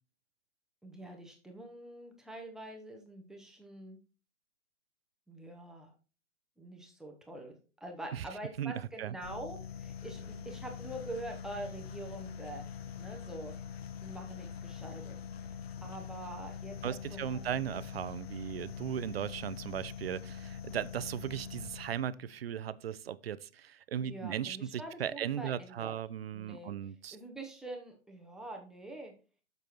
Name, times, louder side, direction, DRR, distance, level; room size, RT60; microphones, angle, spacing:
voice 1, 0.8-4.0 5.3-5.9 6.6-12.7 13.0-13.5 14.0-15.2 15.8-17.5 24.0-25.9 26.3-26.7 27.1-29.1, right 1 dB, ahead, 0.7 m, -45 dB
voice 2, 8.6-9.2 16.8-27.2, right 9 dB, 50° right, 0.5 m, -37 dB
sound 1, 9.2-22.2, left 7 dB, 50° left, 0.9 m, -44 dB
8.9 x 6.9 x 3.0 m
figure-of-eight pair, 125°, 40 cm